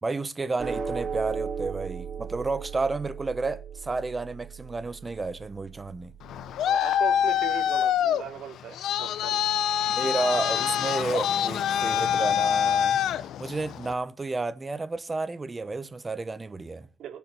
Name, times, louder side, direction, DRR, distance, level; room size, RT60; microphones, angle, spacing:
voice 1, 0.0-6.1 9.9-13.0 13.4-16.9, right 3 dB, 25° right, 1.1 m, -31 dB
sound 1, 0.6-7.1, right 6 dB, 45° right, 3.7 m, -37 dB
Traffic noise roadway noise, 6.2-13.9, left 9 dB, 75° left, 0.7 m, -25 dB
voice 2, 6.6-9.4 17.0-17.2, right 8 dB, 75° right, 2.9 m, -38 dB
17.0 x 7.2 x 6.1 m
cardioid pair, 90°, 0 cm